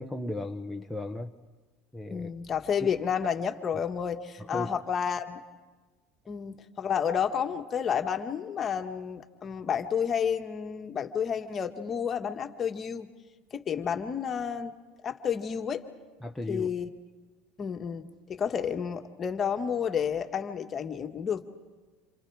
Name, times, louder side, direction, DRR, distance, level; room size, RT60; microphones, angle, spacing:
voice 1, 0.0-1.3 1.9-2.3 2.8-2.9 4.5-4.7 16.2-16.7, left 2 dB, 5° left, 2 dB, 1.3 m, -35 dB
voice 2, 2.1-5.4 6.3-13.1 13.5-14.7 15.0-15.9 16.5-16.9 17.6-21.4, left 7 dB, 35° left, 6 dB, 1.8 m, -31 dB
28.5 x 28.0 x 4.9 m, 1.3 s
figure-of-eight pair, 75°, 0 cm